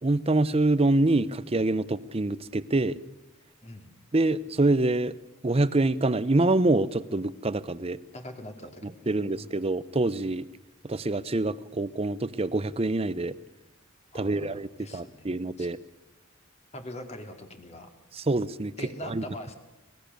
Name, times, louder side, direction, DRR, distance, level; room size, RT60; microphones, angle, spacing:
voice 1, 0.0-3.0 4.1-5.2 5.4-8.0 8.8-10.5 10.8-13.3 14.1-15.8 18.1-18.7 19.0-19.2, right 2 dB, 30° right, 17 dB, 0.7 m, -26 dB
voice 2, 8.1-9.6 14.1-15.7 16.7-17.9 18.8-19.5, left 1 dB, 35° left, 5 dB, 2.3 m, -43 dB
25.5 x 19.5 x 6.8 m, 1.0 s
head